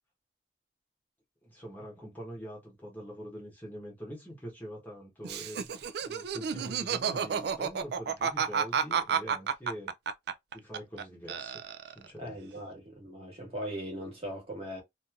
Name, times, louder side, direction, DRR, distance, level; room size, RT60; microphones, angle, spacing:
voice 1, 1.4-9.9 10.5-12.4, equal, 10° left, 0.9 m, -44 dB
Laughter, 5.2-11.0 11.3-12.1, right 7 dB, 55° right, 0.3 m, -31 dB
voice 2, 12.2-14.8, equal, 30° right, 1.3 m, -39 dB
2.9 x 2.5 x 2.3 m
head